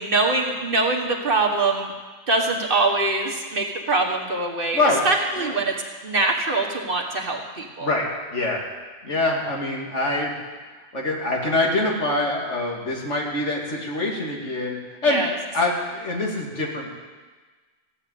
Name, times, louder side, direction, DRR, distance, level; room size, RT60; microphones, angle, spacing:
voice 1, 0.0-1.9 2.3-5.8 6.0-7.9 15.0-15.3, right 3 dB, 50° right, 1 dB, 1.8 m, -23 dB
voice 2, 7.8-8.7 9.0-10.3 10.9-15.2 15.5-16.9, left 2 dB, 85° left, -1 dB, 2.7 m, -24 dB
15.0 x 7.9 x 8.5 m, 1.4 s
omnidirectional pair, 1.2 m